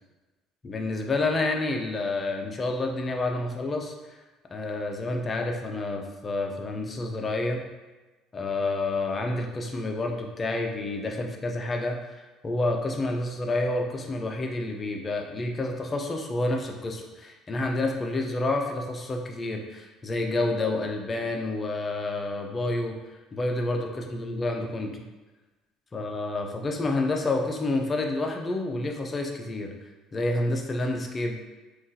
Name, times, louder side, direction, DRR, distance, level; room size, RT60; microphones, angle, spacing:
voice 1, 0.6-4.2 4.5-7.7 8.3-12.1 12.4-25.0 25.9-29.8 30.1-31.4, left 2 dB, 20° left, 2 dB, 0.4 m, -29 dB
2.6 x 2.3 x 3.9 m, 1.2 s
cardioid pair, 145°, 0 cm